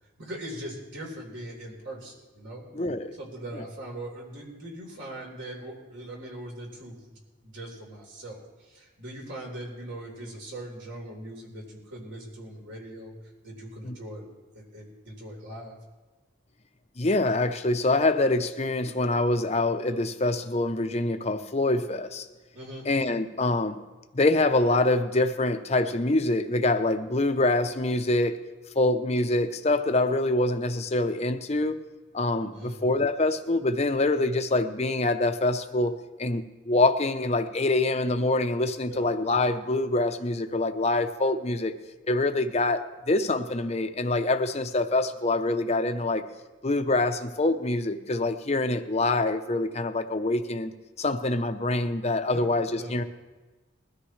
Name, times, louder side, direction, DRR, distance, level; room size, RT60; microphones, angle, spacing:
voice 1, 0.2-2.6 3.2-13.1 13.4-14.3 14.5-15.8 22.5-22.9 32.5-32.8 38.9-39.1 52.3-53.0, right 1 dB, 65° right, -2 dB, 4.0 m, -41 dB
voice 2, 2.7-3.1 3.5-3.6 13.8-13.9 17.0-22.3 22.9-23.8 24.1-28.4 28.8-31.8 32.1-41.7 42.1-46.3 46.6-50.7 51.0-53.0, left 2 dB, 30° left, 8 dB, 0.7 m, -25 dB
21.0 x 13.0 x 3.2 m, 1.2 s
head